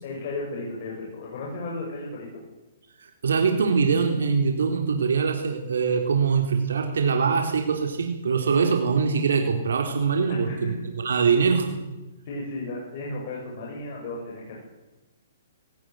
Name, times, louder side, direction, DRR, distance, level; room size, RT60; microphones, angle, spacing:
voice 1, 0.0-2.3 10.3-10.7 12.3-14.6, left 2 dB, 40° left, -2 dB, 7.4 m, -34 dB
voice 2, 3.0-11.8, right 5 dB, 90° right, 4 dB, 3.9 m, -23 dB
22.0 x 19.0 x 9.5 m, 1.1 s
hypercardioid pair, 165°, 0 cm